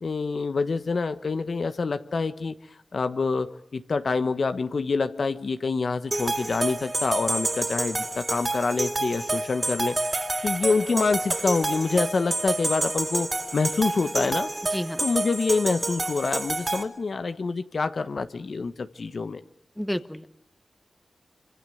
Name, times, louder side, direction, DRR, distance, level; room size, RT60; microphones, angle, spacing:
voice 1, 0.0-2.5 2.9-10.0 10.4-14.5 15.0-19.4, left 4 dB, 65° left, 10 dB, 1.2 m, -26 dB
sound 1, 6.1-16.8, right 2 dB, 40° right, 4.0 m, -28 dB
voice 2, 19.8-20.3, equal, 5° left, 10 dB, 1.6 m, -30 dB
25.0 x 24.5 x 7.8 m, 0.70 s
cardioid pair, 45°, 0 cm